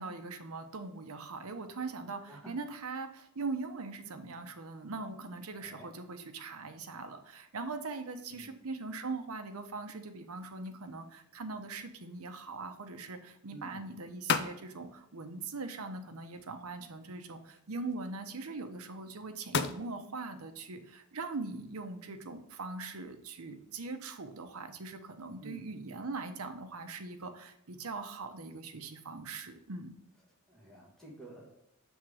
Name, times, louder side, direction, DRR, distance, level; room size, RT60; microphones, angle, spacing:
voice 1, 0.0-29.9, right 3 dB, 85° right, 7 dB, 0.8 m, -41 dB
voice 2, 5.6-5.9 8.3-8.5 13.5-13.8 25.4-25.7 30.5-31.5, right 1 dB, ahead, -5 dB, 1.4 m, -50 dB
sound 1, 10.3-23.1, left 6 dB, 50° left, 0.4 m, -42 dB
7.4 x 3.6 x 4.8 m, 0.78 s
head